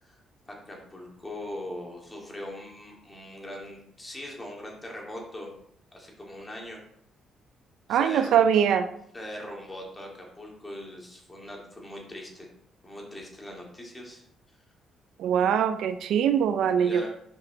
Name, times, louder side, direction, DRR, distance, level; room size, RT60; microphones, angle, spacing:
voice 1, 0.0-5.5 5.9-6.8 7.9-8.4 9.1-12.5 12.8-14.3 16.8-17.1, left 1 dB, 20° left, -1 dB, 2.1 m, -41 dB
voice 2, 7.9-8.9 15.2-17.0, right 8 dB, 80° right, 9 dB, 0.4 m, -22 dB
5.3 x 5.2 x 3.9 m, 0.71 s
cardioid pair, 90°, 0 cm